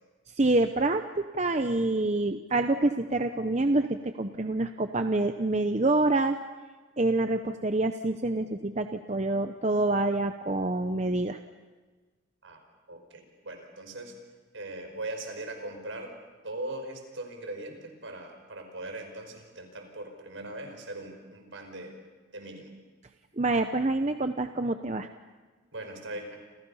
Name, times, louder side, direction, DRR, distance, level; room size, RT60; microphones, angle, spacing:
voice 1, 0.4-6.4 7.0-11.4 23.4-25.1, right 2 dB, 35° right, 7 dB, 0.8 m, -27 dB
voice 2, 12.9-14.1 14.5-16.1 16.4-22.0 22.3-22.7 25.7-26.4, right 2 dB, 70° right, 4 dB, 5.3 m, -40 dB
29.0 x 28.0 x 5.7 m, 1.3 s
head